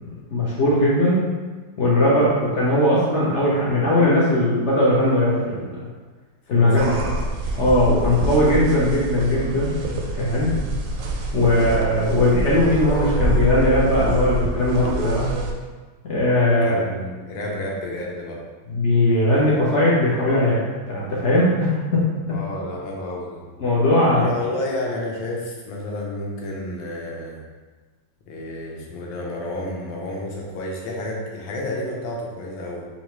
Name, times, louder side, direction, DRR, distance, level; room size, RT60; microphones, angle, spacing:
voice 1, 0.0-1.3 1.8-5.9 6.5-6.9 7.6-10.5 11.3-15.2 16.0-16.8 18.7-22.0 23.6-24.2, left 1 dB, 65° left, -7 dB, 0.7 m, -19 dB
voice 2, 6.5-7.2 16.6-18.4 22.3-23.4 24.1-27.4 28.3-32.9, left 1 dB, 80° left, -2 dB, 1.5 m, -30 dB
sound 1, 6.8-15.5, right 2 dB, 75° right, 1.2 m, -25 dB
4.3 x 2.7 x 3.0 m, 1.3 s
omnidirectional pair, 2.2 m